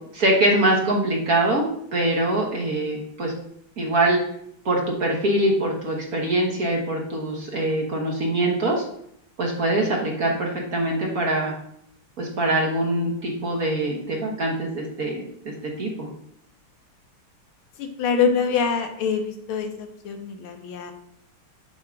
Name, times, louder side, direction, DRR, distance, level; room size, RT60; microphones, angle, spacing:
voice 1, 0.1-1.6 1.9-3.3 3.8-4.2 4.6-8.8 9.4-11.5 12.2-16.1, right 1 dB, 50° right, -1 dB, 1.4 m, -23 dB
voice 2, 17.8-20.9, left 6 dB, 75° left, 5 dB, 1.7 m, -25 dB
7.4 x 2.8 x 5.7 m, 0.71 s
omnidirectional pair, 2.4 m